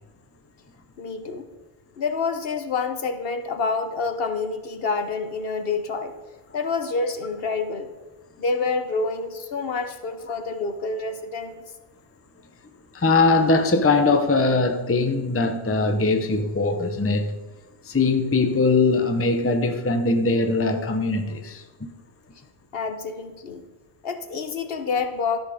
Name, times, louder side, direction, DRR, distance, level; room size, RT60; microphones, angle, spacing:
voice 1, 1.0-1.5 2.0-6.1 6.5-7.9 8.4-11.6 22.7-23.6 24.0-25.4, left 4 dB, 60° left, 1.1 m, -27 dB
voice 2, 12.9-17.3 17.8-21.9, left 3 dB, 15° left, 0.7 m, -21 dB
13.0 x 6.4 x 5.0 m
omnidirectional pair, 1.1 m